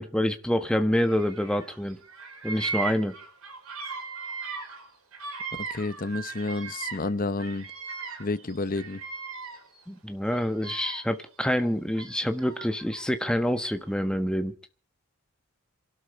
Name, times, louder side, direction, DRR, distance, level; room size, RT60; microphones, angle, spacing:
voice 1, 0.0-2.0 2.4-3.1 9.9-14.5, equal, 5° left, 1.3 m, -27 dB
Bird vocalization bird call bird song, 1.0-1.8 2.0-7.1 7.4-9.8 10.2-11.2 11.9-13.0, right 5 dB, 75° right, 4.6 m, -38 dB
voice 2, 5.6-7.7 8.2-9.0, left 3 dB, 40° left, 0.8 m, -30 dB
27.0 x 12.0 x 4.4 m
head